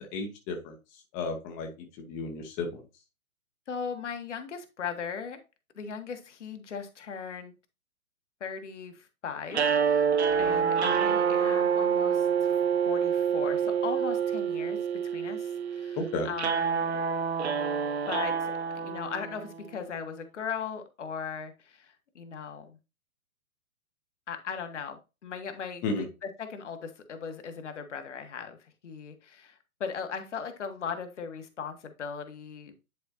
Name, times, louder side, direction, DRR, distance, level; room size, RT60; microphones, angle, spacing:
voice 1, 0.1-0.7 1.1-2.8 16.0-16.3 25.8-26.0, left 3 dB, 15° left, 4 dB, 0.8 m, -33 dB
voice 2, 3.7-5.4 5.7-7.5 8.4-17.0 18.1-22.8 24.3-32.7, left 6 dB, 55° left, 7 dB, 1.5 m, -38 dB
sound 1, 9.5-19.7, right 7 dB, 50° right, 1.0 m, -27 dB
10.0 x 4.4 x 2.8 m, 0.28 s
figure-of-eight pair, 120°, 43 cm